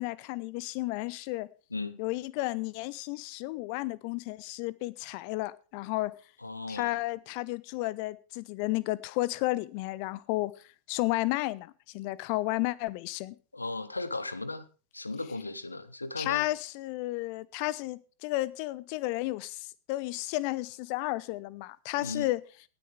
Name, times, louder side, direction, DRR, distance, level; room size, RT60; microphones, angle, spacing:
voice 1, 0.0-1.5 2.0-6.1 6.7-10.5 10.9-13.4 16.2-22.4, left 19 dB, 45° left, 21 dB, 0.7 m, -32 dB
voice 2, 6.4-7.0 13.5-14.6 14.9-16.5 22.0-22.3, left 3 dB, 80° left, 16 dB, 1.0 m, -36 dB
18.0 x 9.8 x 3.6 m, 0.36 s
figure-of-eight pair, 90°, 0 cm